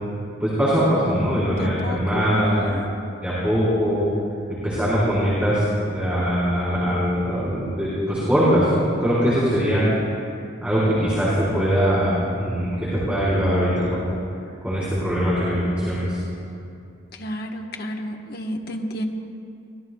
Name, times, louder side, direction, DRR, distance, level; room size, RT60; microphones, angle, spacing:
voice 1, 0.4-2.7 3.2-4.1 4.5-5.6 5.9-9.9 10.6-14.0 14.6-16.2, equal, 5° right, -11 dB, 4.2 m, -21 dB
voice 2, 1.5-2.9 17.1-19.0, equal, 50° left, 1 dB, 1.2 m, -31 dB
25.0 x 18.5 x 2.3 m, 2.5 s
head